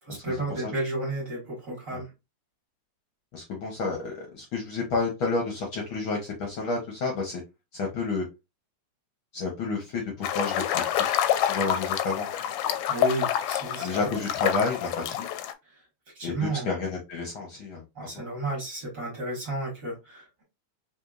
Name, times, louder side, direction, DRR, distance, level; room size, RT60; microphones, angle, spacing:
voice 1, 0.0-2.1 12.9-13.9 15.6-15.8 16.1-16.7 18.0-20.4, right 2 dB, 35° right, -4 dB, 1.7 m, -32 dB
voice 2, 3.3-7.4 7.7-8.2 9.3-12.3 13.8-15.3 16.2-18.2, left 3 dB, 65° left, 0 dB, 1.3 m, -31 dB
sound 1, 10.2-15.5, left 11 dB, 80° left, 1.7 m, -27 dB
4.3 x 3.4 x 2.4 m, 0.24 s
omnidirectional pair, 3.3 m